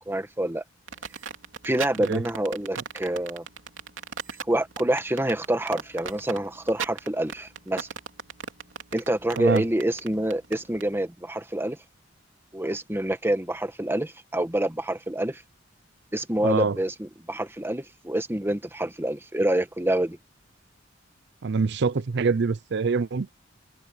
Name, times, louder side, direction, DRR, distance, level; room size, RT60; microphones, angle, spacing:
voice 1, 0.1-0.6 1.6-3.4 4.5-7.9 8.9-11.8 12.5-15.4 16.1-20.2, right 1 dB, 10° right, 1.4 m, -27 dB
sound 1, 0.9-10.9, right 6 dB, 85° right, 3.0 m, -36 dB
voice 2, 16.4-16.8 21.4-23.3, right 4 dB, 65° right, 0.5 m, -25 dB
head